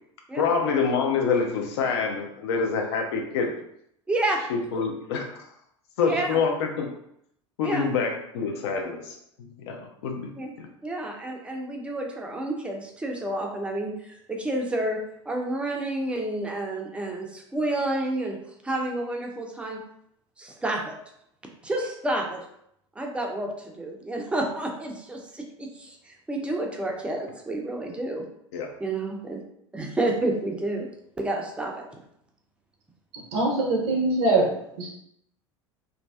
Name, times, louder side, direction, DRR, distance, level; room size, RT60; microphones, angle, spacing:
voice 1, 0.3-3.5 4.5-5.5 6.0-6.9 7.6-10.7 28.5-28.7, left 5 dB, 55° left, 2 dB, 0.5 m, -27 dB
voice 2, 4.1-4.4 6.0-6.4 7.6-7.9 10.4-10.5 10.8-15.0 15.3-18.4 18.6-19.8 20.4-20.9 21.6-22.4 23.0-28.2 28.8-29.4 29.7-30.9 31.2-31.7, right 2 dB, 5° right, 1 dB, 0.4 m, -29 dB
voice 3, 33.3-34.9, right 2 dB, 55° right, -1 dB, 0.6 m, -23 dB
2.4 x 2.2 x 2.2 m, 0.74 s
figure-of-eight pair, 75°, 16 cm